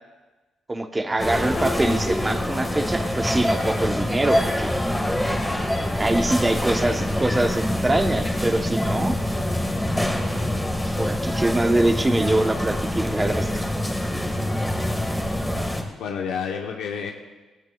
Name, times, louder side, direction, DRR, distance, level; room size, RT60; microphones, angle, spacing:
voice 1, 0.7-4.7 6.0-9.2 11.0-13.6, right 1 dB, 15° right, 6 dB, 0.9 m, -24 dB
sound 1, 1.2-15.8, left 1 dB, 5° left, 1.7 m, -25 dB
sound 2, 1.6-7.5 7.9-8.1 8.9-9.0, left 3 dB, 40° left, 1.5 m, -40 dB
voice 2, 6.1-6.6 16.0-17.1, left 6 dB, 85° left, 1 dB, 0.9 m, -32 dB
17.0 x 16.0 x 2.4 m, 1.2 s
cardioid pair, 90°, 0 cm